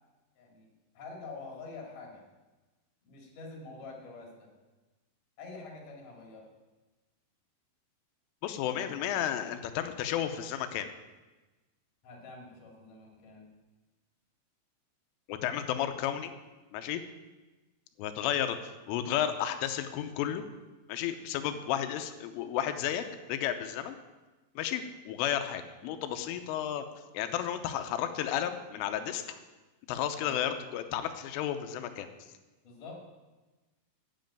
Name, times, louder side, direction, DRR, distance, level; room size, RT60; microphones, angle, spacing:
voice 1, 0.4-0.7 0.9-2.2 3.0-4.5 5.4-6.5 8.8-9.1 12.0-13.5 30.2-30.5 32.6-33.0, left 3 dB, 45° left, 0 dB, 3.8 m, -46 dB
voice 2, 8.4-10.9 15.3-16.3 16.7-17.0 18.0-18.6 18.9-20.4 20.9-24.0 24.6-26.8 27.1-29.4 29.9-32.1, left 10 dB, 85° left, 8 dB, 3.3 m, -32 dB
9.9 x 7.6 x 9.0 m, 1.2 s
omnidirectional pair, 5.7 m